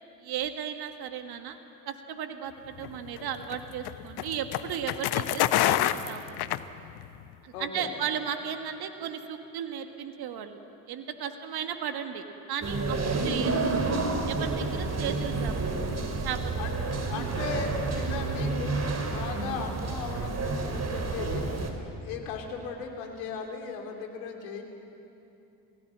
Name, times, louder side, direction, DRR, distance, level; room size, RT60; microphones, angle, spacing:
voice 1, 0.2-1.6 1.9-6.4 7.4-10.6 10.9-13.8 14.3-16.0 16.2-16.6 17.1-17.3, right 8 dB, 50° right, 7 dB, 1.7 m, -35 dB
sound 1, 2.8-7.2, left 13 dB, 55° left, 1.0 m, -28 dB
voice 2, 7.5-7.9 16.6-21.5 22.0-24.6, left 5 dB, 70° left, 3 dB, 3.3 m, -37 dB
sound 2, 12.6-21.7, right 3 dB, 35° right, 3.6 m, -30 dB
28.0 x 17.0 x 7.6 m, 2.8 s
hypercardioid pair, 60°, 47 cm